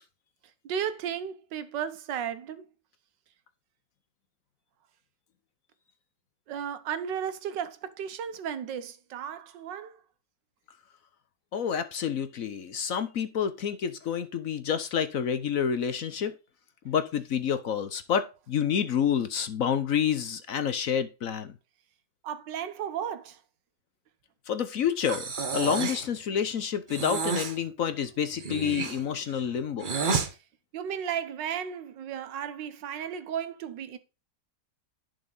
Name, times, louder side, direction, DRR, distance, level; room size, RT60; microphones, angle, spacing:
voice 1, 0.6-2.7 6.5-10.0 22.2-23.4 30.7-34.0, right 8 dB, 80° right, 1.6 m, -34 dB
voice 2, 11.5-16.3 16.8-21.5 24.5-30.0, left 8 dB, 55° left, 1.1 m, -28 dB
Breathing, 25.0-26.1 26.9-27.6 28.3-30.3, right 4 dB, 40° right, 0.8 m, -30 dB
11.0 x 5.1 x 3.9 m
omnidirectional pair, 1.9 m